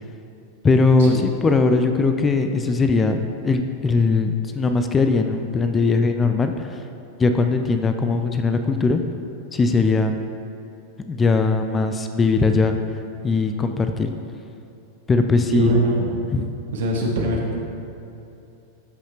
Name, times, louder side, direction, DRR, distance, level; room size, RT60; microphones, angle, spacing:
voice 1, 0.6-6.8 7.2-9.0 9.5-10.2 11.1-12.8 13.2-14.1 15.1-15.7 16.3-16.5, left 3 dB, 20° left, 6 dB, 0.4 m, -20 dB
voice 2, 15.5-16.1 16.7-17.5, right 1 dB, 60° right, -1 dB, 1.3 m, -22 dB
12.5 x 5.7 x 2.9 m, 2.9 s
figure-of-eight pair, 90°, 0 cm